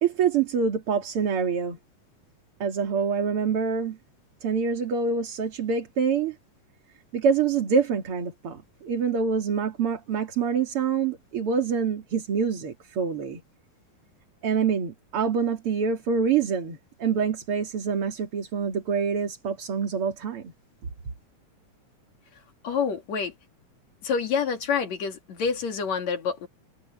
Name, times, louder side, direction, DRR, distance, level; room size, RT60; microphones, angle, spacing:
voice 1, 0.0-1.8 2.6-4.0 4.4-6.4 7.1-13.4 14.4-20.5, right 6 dB, 45° right, 3.1 m, -26 dB
voice 2, 22.6-23.3 24.0-26.5, left 6 dB, 65° left, 3.6 m, -27 dB
omnidirectional pair, 3.5 m